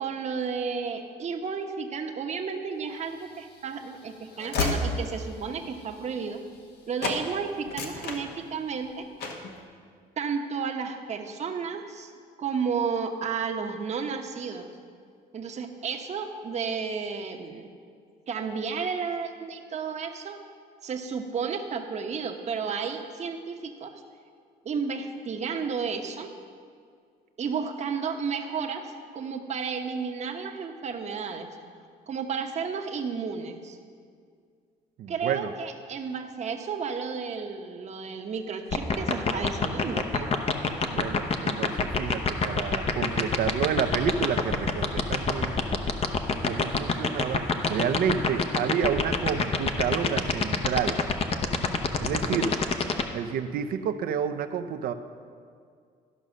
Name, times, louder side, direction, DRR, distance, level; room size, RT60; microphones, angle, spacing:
voice 1, 0.0-6.4 6.9-9.1 10.2-12.1 12.4-14.7 15.3-17.7 18.3-20.4 20.8-24.0 24.6-26.3 27.4-31.5 32.1-33.8 35.1-40.3 52.2-52.5, right 5 dB, 40° right, 5 dB, 1.0 m, -32 dB
Train / Slam, 3.1-6.7 7.0-7.2 7.6-8.8 9.2-9.5, left 3 dB, 70° left, 1.2 m, -32 dB
voice 2, 35.0-35.5 40.9-45.6 46.4-51.0 52.0-52.5 52.9-54.9, right 7 dB, 60° right, 9 dB, 0.6 m, -30 dB
sound 1, 38.7-53.0, left 5 dB, 35° left, 0.8 m, -24 dB
12.5 x 5.5 x 6.2 m, 2.1 s
cardioid pair, 110°, 17 cm